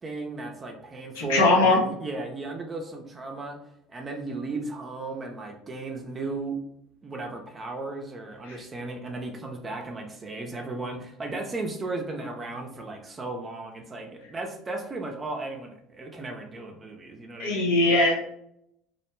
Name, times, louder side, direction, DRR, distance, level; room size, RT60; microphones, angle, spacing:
voice 1, 0.0-3.6 3.9-6.6 7.0-17.7, right 3 dB, 30° right, 2 dB, 0.5 m, -35 dB
voice 2, 1.2-1.8 8.5-8.6 17.4-18.1, left 2 dB, 80° left, -2 dB, 0.6 m, -20 dB
2.4 x 2.1 x 3.0 m, 0.74 s
hypercardioid pair, 75°, 0 cm